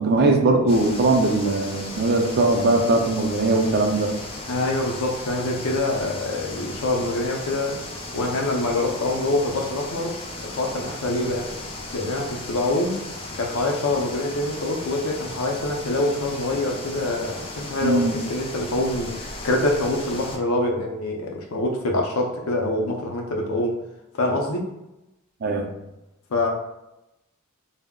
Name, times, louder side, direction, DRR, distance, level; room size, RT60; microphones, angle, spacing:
voice 1, 0.0-4.1 17.8-18.2 25.4-25.7, right 2 dB, 50° right, 3 dB, 0.4 m, -20 dB
sound 1, 0.7-20.4, left 2 dB, 25° left, 0.4 m, -36 dB
voice 2, 4.5-7.8 8.1-11.5 11.9-13.0 13.3-23.8 24.1-24.7 26.3-26.5, left 2 dB, 80° left, 2 dB, 0.5 m, -25 dB
2.2 x 2.0 x 3.5 m, 0.92 s
head